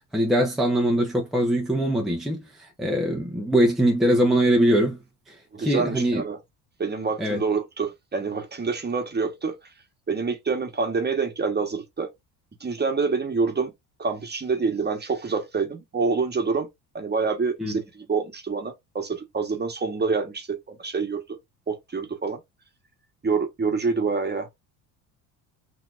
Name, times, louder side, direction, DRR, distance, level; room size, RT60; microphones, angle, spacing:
voice 1, 0.1-5.0 5.3-6.2 7.2-7.4 17.6-17.7, right 1 dB, ahead, 0.8 m, -22 dB
voice 2, 5.5-6.4 6.8-9.6 10.1-12.1 12.6-13.7 14.0-16.7 16.9-21.2 21.7-22.4 23.2-24.5, right 4 dB, 20° right, 1.2 m, -26 dB
5.9 x 2.9 x 2.5 m
hypercardioid pair, 75°, 45 cm